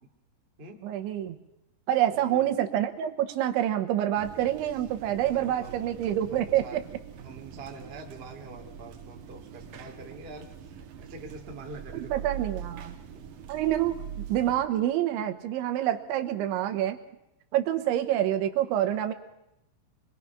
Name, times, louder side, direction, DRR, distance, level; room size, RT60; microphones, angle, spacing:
voice 1, 0.8-1.4 1.9-6.8 11.9-13.0 13.5-14.0 14.3-17.0 17.5-19.1, right 12 dB, 85° right, 6 dB, 3.6 m, -27 dB
voice 2, 2.1-2.5 5.2-6.8 7.2-12.3 13.1-13.2, right 3 dB, 30° right, 1 dB, 1.1 m, -45 dB
sound 1, 4.2-14.7, right 8 dB, 65° right, 2.2 m, -43 dB
25.0 x 20.5 x 5.9 m, 0.87 s
omnidirectional pair, 5.3 m